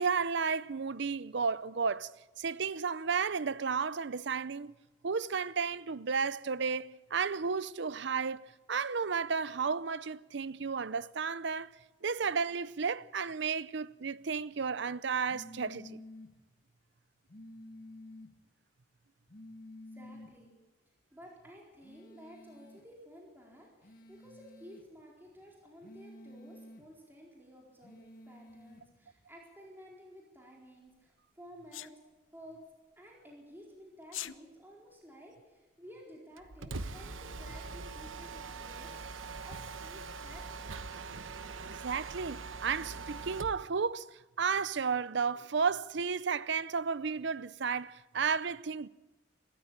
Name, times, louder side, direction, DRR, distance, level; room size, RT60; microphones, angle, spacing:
voice 1, 0.0-2.1 2.4-4.7 5.0-8.4 8.7-11.7 12.0-16.0 41.8-48.9, right 5 dB, 60° right, 0.6 m, -33 dB
sound 1, 15.3-16.3 17.3-18.3 19.3-20.3 21.8-22.9 23.8-24.9 25.8-26.9 27.8-28.8, left 1 dB, 45° left, 2.0 m, -51 dB
voice 2, 19.9-20.6 21.1-31.9 32.3-32.6 33.0-39.0 39.4-41.7, equal, 10° right, 4.3 m, -54 dB
Sneeze, 31.7-31.9 34.0-34.4, left 14 dB, 80° left, 0.7 m, -40 dB
Mechanisms, 36.4-43.6, right 4 dB, 80° right, 1.0 m, -42 dB
22.5 x 14.0 x 8.8 m
head